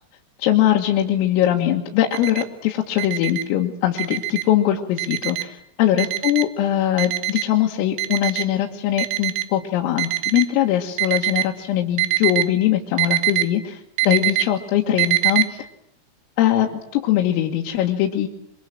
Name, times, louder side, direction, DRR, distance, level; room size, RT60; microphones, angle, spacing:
voice 1, 0.4-15.7 16.4-18.3, left 12 dB, 85° left, -1 dB, 4.3 m, -21 dB
Alarm, 2.1-2.4 3.0-3.4 4.0-4.4 5.0-5.4 6.0-6.4 7.0-7.5 8.0-8.5 9.0-9.5 10.0-10.5 11.0-11.5 12.0-12.4 13.0-13.4 14.0-14.4 15.0-15.4, right 16 dB, 70° right, 3.2 m, -22 dB
24.5 x 24.0 x 7.6 m, 0.72 s
omnidirectional pair, 5.9 m